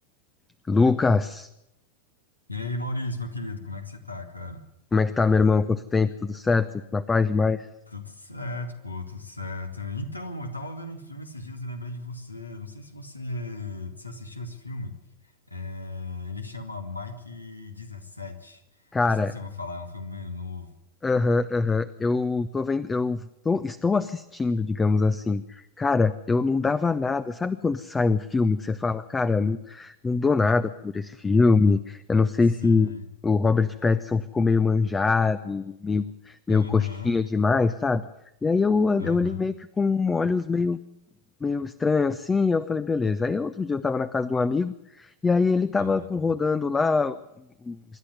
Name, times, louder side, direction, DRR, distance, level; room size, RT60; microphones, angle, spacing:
voice 1, 0.7-1.5 4.9-7.7 18.9-19.3 21.0-32.9 33.2-38.0 38.4-40.8 41.4-47.2 47.6-47.8, left 4 dB, 15° left, 13 dB, 0.7 m, -23 dB
voice 2, 2.5-4.7 7.9-14.9 15.5-20.8 32.6-33.1 36.5-37.1 39.0-39.4 45.8-46.1, left 3 dB, 85° left, 6 dB, 2.2 m, -36 dB
25.5 x 11.5 x 9.6 m, 0.85 s
figure-of-eight pair, 90°, 0 cm